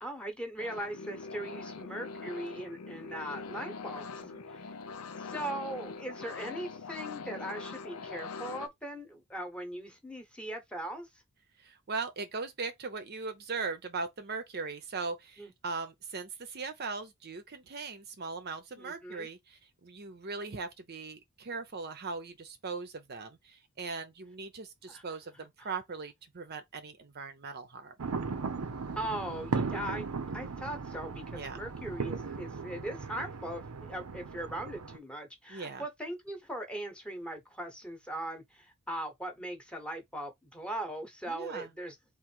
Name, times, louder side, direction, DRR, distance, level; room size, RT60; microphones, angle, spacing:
voice 1, 0.0-4.2 4.6-4.7 5.2-11.1 15.4-15.5 18.8-19.3 24.9-25.0 25.6-25.7 29.0-30.1 30.3-41.9, right 1 dB, 5° left, 1.0 m, -39 dB
sound 1, 0.6-8.7, left 4 dB, 80° left, 0.6 m, -42 dB
voice 2, 11.6-27.9 31.3-31.6 35.5-35.8 41.3-41.7, right 4 dB, 45° right, 0.7 m, -39 dB
sound 2, 28.0-35.0, right 4 dB, 80° right, 0.7 m, -37 dB
3.8 x 2.6 x 4.4 m
head